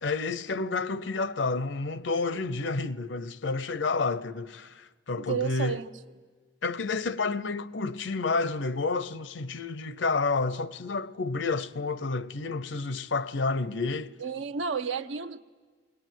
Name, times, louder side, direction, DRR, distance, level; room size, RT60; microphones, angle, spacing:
voice 1, 0.0-5.8 6.6-14.2, left 3 dB, 75° left, 0.7 m, -30 dB
voice 2, 5.2-5.9 14.2-15.4, right 6 dB, 80° right, 0.8 m, -32 dB
21.0 x 19.0 x 9.3 m
head